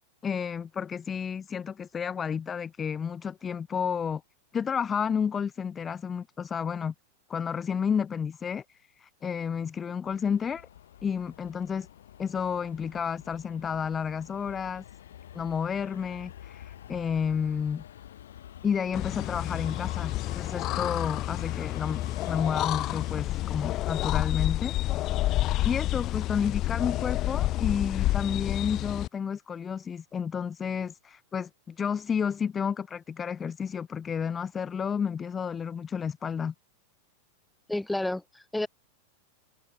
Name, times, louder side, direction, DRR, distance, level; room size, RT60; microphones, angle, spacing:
voice 1, 0.2-4.2 4.5-6.9 7.3-10.7 11.0-11.9 12.2-14.8 15.3-17.8 18.6-24.7 25.6-36.5, left 7 dB, 20° left, 0.8 m, -31 dB
Subway metro underground, 10.0-23.2, left 11 dB, 60° left, 6.3 m, -48 dB
sound 1, 18.9-29.1, left 15 dB, 35° left, 1.7 m, -29 dB
voice 2, 37.7-38.7, left 1 dB, 5° left, 5.3 m, -30 dB
figure-of-eight pair, 90°, 0 cm